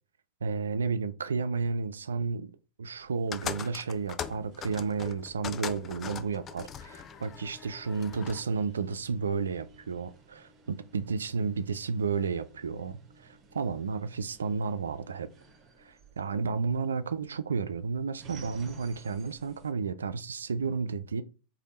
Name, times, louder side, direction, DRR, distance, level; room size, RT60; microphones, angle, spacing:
voice 1, 0.4-2.5 2.8-15.3 15.8-21.2, right 5 dB, 70° right, 0.3 m, -32 dB
elevator trip, 3.0-19.7, right 3 dB, 30° right, 0.7 m, -57 dB
sound 1, 3.3-8.5, left 8 dB, 25° left, 0.3 m, -40 dB
3.4 x 2.2 x 4.0 m
figure-of-eight pair, 90°, 0 cm